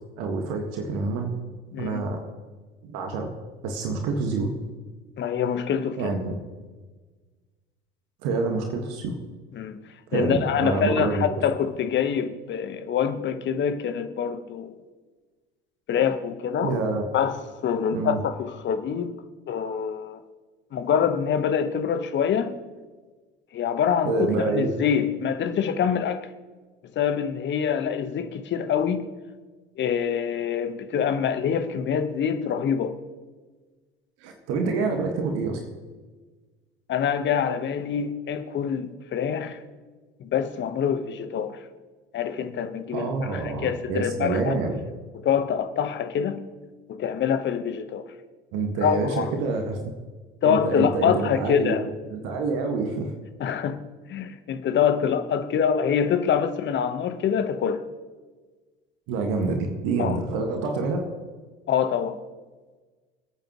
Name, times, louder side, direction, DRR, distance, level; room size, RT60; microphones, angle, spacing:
voice 1, 0.2-1.3 1.8-2.2 2.8-3.3 3.6-4.5 6.0-6.3 8.2-9.1 10.1-11.3 16.6-17.0 17.9-18.2 24.1-24.7 34.2-35.6 42.9-44.8 48.5-49.8 50.4-51.8 52.1-53.1 59.1-61.0, right 3 dB, 55° right, 1.8 m, -27 dB
voice 2, 1.7-2.0 5.2-6.0 9.5-9.8 10.1-14.7 15.9-16.7 17.1-17.4 17.6-19.2 19.5-20.2 20.7-22.5 23.5-26.3 26.9-29.1 29.8-33.0 36.9-39.6 40.2-41.6 42.1-44.5 45.1-46.4 46.9-48.1 48.8-49.3 50.4-51.8 53.4-53.8 54.1-57.8 60.0-60.2 61.7-62.2, left 8 dB, 40° left, 1.2 m, -25 dB
27.0 x 9.0 x 3.1 m
figure-of-eight pair, 65°, 30 cm